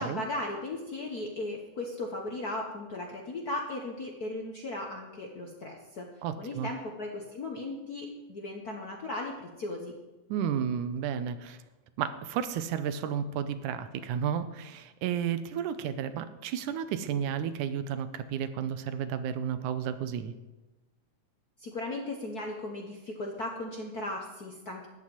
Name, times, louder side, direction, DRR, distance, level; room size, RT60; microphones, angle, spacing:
voice 1, 0.0-6.1 6.4-9.9 21.6-24.9, left 2 dB, 70° left, 1 dB, 0.9 m, -37 dB
voice 2, 6.2-6.7 10.3-11.6 12.0-20.3, right 8 dB, 85° right, 11 dB, 2.3 m, -32 dB
13.5 x 5.8 x 9.4 m, 1.1 s
omnidirectional pair, 3.5 m